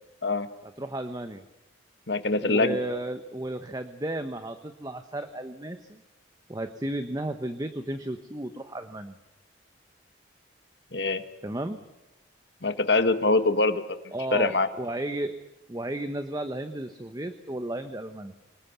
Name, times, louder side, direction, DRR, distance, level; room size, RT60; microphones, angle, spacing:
voice 1, 0.8-1.4 2.4-6.0 6.5-9.2 11.4-11.8 14.1-15.3 15.7-18.3, right 1 dB, 20° right, 8 dB, 1.0 m, -33 dB
voice 2, 2.1-2.8 10.9-11.2 12.6-14.7, left 3 dB, 60° left, 10 dB, 1.7 m, -24 dB
26.0 x 20.0 x 8.2 m, 0.97 s
head